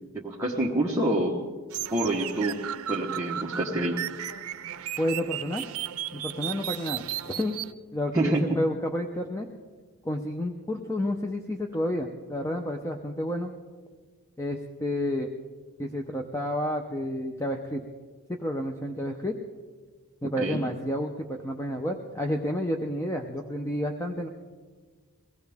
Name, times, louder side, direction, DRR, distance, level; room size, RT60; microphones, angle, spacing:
voice 1, 0.1-1.4 1.9-2.6 2.9-4.0 8.1-8.6 20.4-20.6, right 1 dB, 15° right, -4 dB, 1.2 m, -26 dB
sound 1, 1.7-7.7, right 11 dB, 80° right, 0.6 m, -35 dB
voice 2, 5.0-5.7 6.1-7.5 7.9-9.5 10.0-13.5 14.4-15.3 15.8-17.8 18.4-19.4 20.2-24.3, left 1 dB, 15° left, 3 dB, 0.7 m, -30 dB
23.0 x 17.0 x 3.5 m, 1.5 s
head